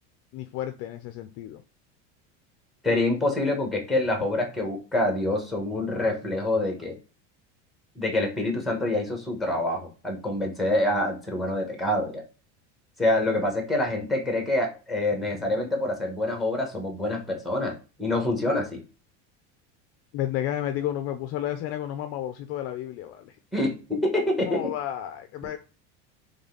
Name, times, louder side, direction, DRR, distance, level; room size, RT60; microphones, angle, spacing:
voice 1, 0.3-1.6 20.1-23.4 24.5-25.6, left 12 dB, 45° left, 8 dB, 0.4 m, -32 dB
voice 2, 2.8-6.9 8.0-12.2 13.0-18.8 23.5-24.7, left 1 dB, ahead, 3 dB, 1.2 m, -26 dB
4.0 x 3.3 x 3.8 m, 0.34 s
supercardioid pair, 140°, 35 cm